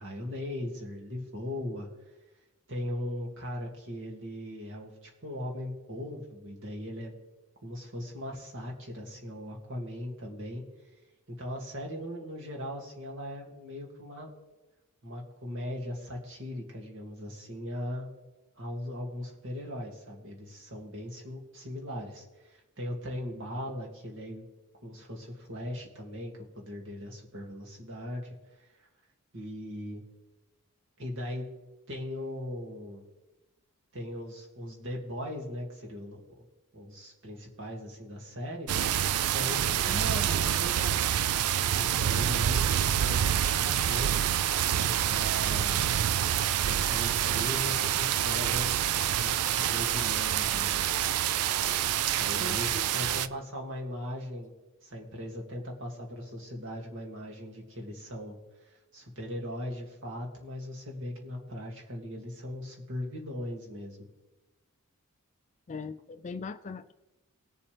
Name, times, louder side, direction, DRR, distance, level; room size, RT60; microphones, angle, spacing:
voice 1, 0.0-1.9 2.7-7.1 7.6-10.6 11.3-14.3 15.0-18.1 18.6-24.5 24.8-28.9 29.3-30.0 31.0-31.5 31.9-33.0 33.9-36.5 36.7-38.7 39.2-41.1 41.6-44.1 44.7-45.9 46.5-51.0 52.2-54.5 54.8-64.0, left 1 dB, 60° right, -1 dB, 2.4 m, -39 dB
sound 1, 38.7-53.3, right 10 dB, 80° right, 0.4 m, -27 dB
voice 2, 52.4-52.9 65.7-66.9, left 4 dB, 35° left, 11 dB, 0.4 m, -40 dB
20.0 x 7.0 x 3.4 m, 1.1 s
head